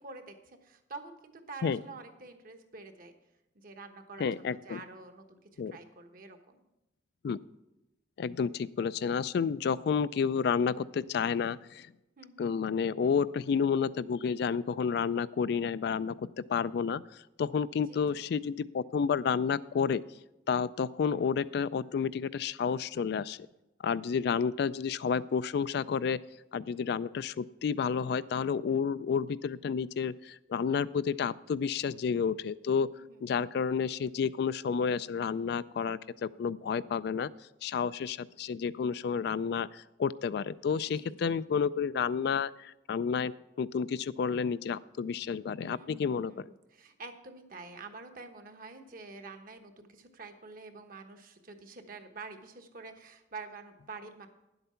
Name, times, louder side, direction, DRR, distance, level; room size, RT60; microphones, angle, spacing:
voice 1, 0.0-3.1 3.5-6.6 12.2-12.5 17.9-18.2 32.9-33.4 40.9-41.3 45.6-54.3, right 3 dB, 50° right, 7 dB, 1.1 m, -48 dB
voice 2, 4.2-4.8 5.6-5.7 7.2-7.4 8.2-11.9 12.4-17.0 17.4-20.0 20.5-23.4 23.8-26.2 26.5-32.9 33.2-37.3 37.6-43.3 43.6-46.4, left 6 dB, 65° left, 17 dB, 0.3 m, -30 dB
10.5 x 8.0 x 5.7 m, 0.95 s
head